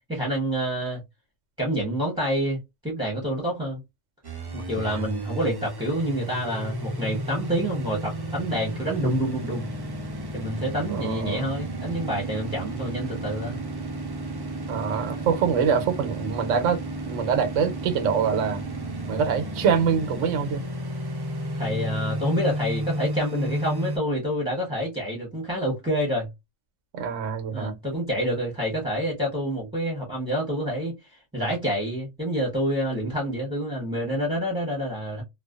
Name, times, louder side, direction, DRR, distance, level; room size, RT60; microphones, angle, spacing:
voice 1, 0.1-1.0 1.6-3.8 4.5-9.7 10.3-13.6 14.9-15.3 21.6-26.3 27.5-30.9 31.3-35.2, equal, 5° right, 0.7 m, -28 dB
sound 1, 4.2-24.0, right 1 dB, 40° right, 0.3 m, -32 dB
voice 2, 10.9-11.5 14.7-16.8 17.1-18.6 19.1-20.6 26.9-27.8, right 7 dB, 80° right, 1.0 m, -25 dB
2.4 x 2.2 x 2.3 m
omnidirectional pair, 1.3 m